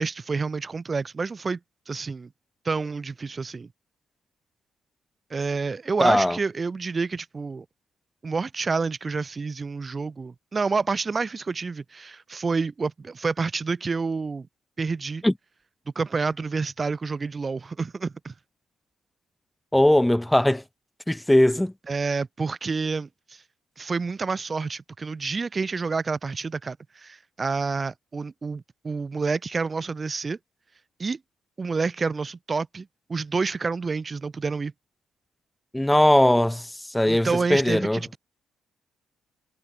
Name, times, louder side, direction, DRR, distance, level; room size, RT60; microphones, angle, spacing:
voice 1, 0.0-1.6 1.9-2.3 2.6-3.7 5.3-7.6 8.2-14.5 14.8-15.2 15.9-18.3 21.9-23.4 23.8-30.4 31.0-31.2 31.6-34.7 37.1-38.2, right 4 dB, 30° right, 1.1 m, -28 dB
voice 2, 6.0-6.4 15.2-15.3 19.7-20.6 21.1-21.7 35.7-38.0, left 1 dB, 5° left, 1.3 m, -20 dB
cardioid pair, 90°, 0 cm